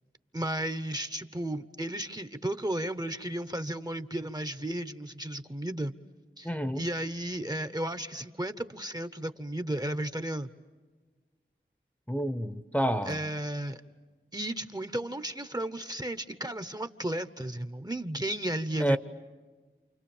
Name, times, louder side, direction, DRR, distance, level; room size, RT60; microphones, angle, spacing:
voice 1, 0.3-5.9 6.4-10.5 13.1-13.8 14.3-19.0, right 1 dB, 20° right, 0.9 m, -34 dB
voice 2, 6.4-6.8 12.1-13.2 18.8-19.0, equal, 5° left, 0.9 m, -29 dB
29.0 x 28.5 x 7.2 m
wide cardioid pair, 50°, 20 cm